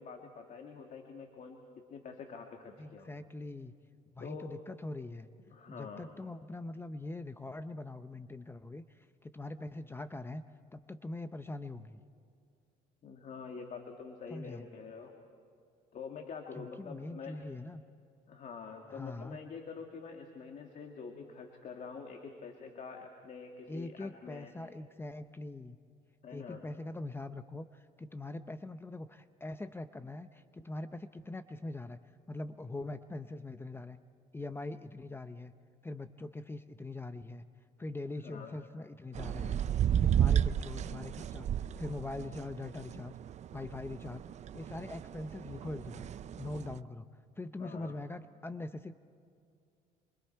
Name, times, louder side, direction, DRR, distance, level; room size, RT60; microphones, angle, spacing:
voice 1, 0.0-3.1 4.2-4.6 5.5-6.2 13.0-15.1 15.9-17.5 18.3-24.5 26.2-26.6 38.2-38.5 47.6-48.0, left 5 dB, 50° left, 3 dB, 2.1 m, -46 dB
voice 2, 2.8-3.7 4.1-5.3 5.7-10.4 10.7-12.0 14.3-14.7 16.6-17.8 18.9-19.4 23.7-25.8 26.3-32.0 32.3-34.0 34.3-35.5 35.8-37.4 37.8-39.6 40.0-43.2 43.5-44.3 44.5-46.1 46.4-47.1 47.4-48.9, left 2 dB, 15° left, 10 dB, 0.6 m, -42 dB
sound 1, 39.1-46.8, right 9 dB, 45° right, 0.5 m, -33 dB
27.5 x 24.5 x 4.6 m, 2.4 s
cardioid pair, 110°, 17 cm